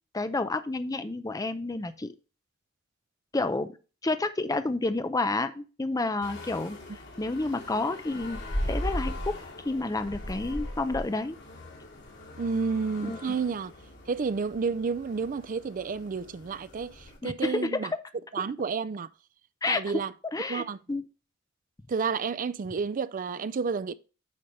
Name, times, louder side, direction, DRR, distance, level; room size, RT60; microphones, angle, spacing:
voice 1, 0.1-2.1 3.3-3.7 4.0-6.8 7.2-8.4 8.7-9.4 9.6-11.4 13.0-13.2 17.2-17.8 19.6-20.0 20.3-21.0, left 2 dB, 20° left, 0.5 m, -30 dB
sound 1, 6.2-17.2, equal, 60° left, 2.5 m, -38 dB
voice 2, 12.4-13.7 14.1-17.9 18.3-19.1 19.7-20.1 20.5-20.8 21.9-23.9, right 5 dB, 40° right, 0.4 m, -30 dB
8.7 x 3.3 x 5.3 m
head